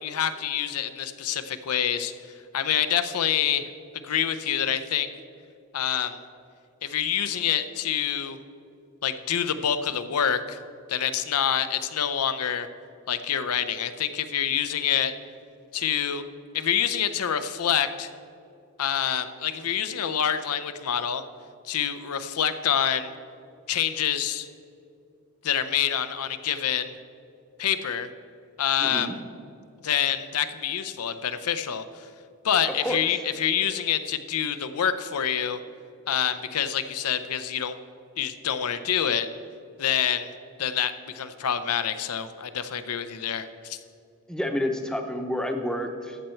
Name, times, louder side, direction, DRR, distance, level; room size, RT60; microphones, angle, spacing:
voice 1, 0.0-2.1 2.5-3.7 4.0-5.1 5.7-6.2 6.8-8.4 9.0-10.6 10.9-12.7 13.1-15.1 15.7-16.2 16.5-18.1 18.8-21.2 21.6-23.1 23.7-24.5 25.4-26.9 27.6-28.1 28.6-29.1 29.8-31.8 32.4-35.6 36.1-37.7 38.2-39.3 39.8-40.3 40.6-43.8, left 9 dB, 85° left, 12 dB, 0.6 m, -26 dB
voice 2, 28.8-29.2 32.8-33.2 44.3-46.2, left 1 dB, 5° left, 5 dB, 0.7 m, -29 dB
13.0 x 7.7 x 4.4 m, 2.6 s
head